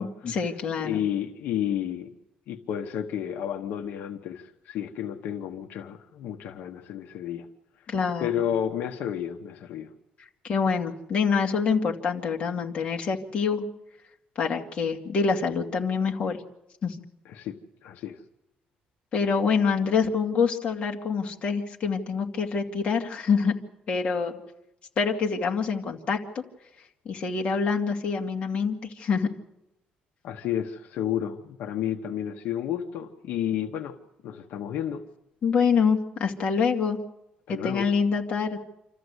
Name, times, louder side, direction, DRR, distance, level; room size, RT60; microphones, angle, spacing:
voice 1, 0.0-1.0 7.9-8.4 10.4-13.6 14.4-16.4 16.8-17.0 19.1-23.5 23.9-24.4 25.0-26.4 27.1-29.3 35.4-37.0 37.5-38.6, left 5 dB, 35° left, 1 dB, 2.3 m, -26 dB
voice 2, 0.8-2.1 2.5-7.5 8.2-9.9 17.2-18.2 30.2-34.0 34.2-35.0 37.5-37.9, left 10 dB, 75° left, 5 dB, 1.3 m, -31 dB
27.0 x 14.0 x 8.2 m, 0.90 s
cardioid pair, 170°, 3 cm